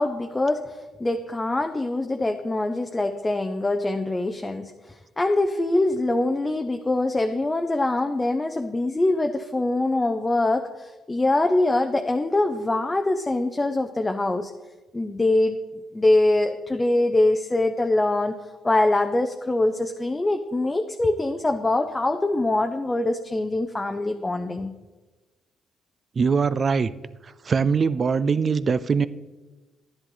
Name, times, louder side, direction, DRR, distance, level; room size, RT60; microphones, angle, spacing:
voice 1, 0.0-14.5 14.9-15.6 15.9-18.3 18.6-24.7, left 2 dB, 20° left, 5 dB, 0.6 m, -23 dB
voice 2, 26.2-26.9 27.5-29.1, right 5 dB, 40° right, 16 dB, 0.4 m, -22 dB
11.0 x 10.0 x 3.9 m, 1.2 s
cardioid pair, 90°, 0 cm